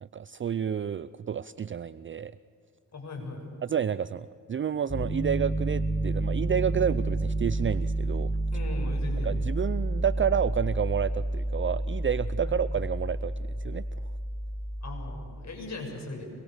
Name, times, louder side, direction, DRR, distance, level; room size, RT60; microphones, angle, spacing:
voice 1, 0.0-2.3 3.6-8.3 9.2-14.1, right 8 dB, 35° right, 16 dB, 0.5 m, -30 dB
voice 2, 2.9-3.5 8.5-9.4 12.4-12.6 14.8-16.3, left 2 dB, 50° left, 2 dB, 6.7 m, -38 dB
Piano, 4.9-15.1, right 1 dB, 15° left, 7.5 m, -30 dB
25.0 x 22.0 x 6.7 m, 2.5 s
cardioid pair, 65°, 34 cm